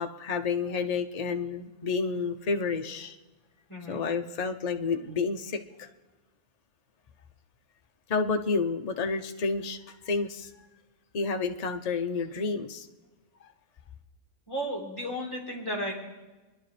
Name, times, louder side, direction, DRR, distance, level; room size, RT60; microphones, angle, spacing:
voice 1, 0.0-3.2 3.9-5.9 8.1-10.5 11.1-12.9 13.4-13.5, left 4 dB, 35° left, 5 dB, 0.7 m, -30 dB
voice 2, 3.7-4.0 14.5-15.9, equal, 15° left, -4 dB, 3.9 m, -33 dB
27.0 x 11.0 x 3.3 m, 1.2 s
omnidirectional pair, 1.5 m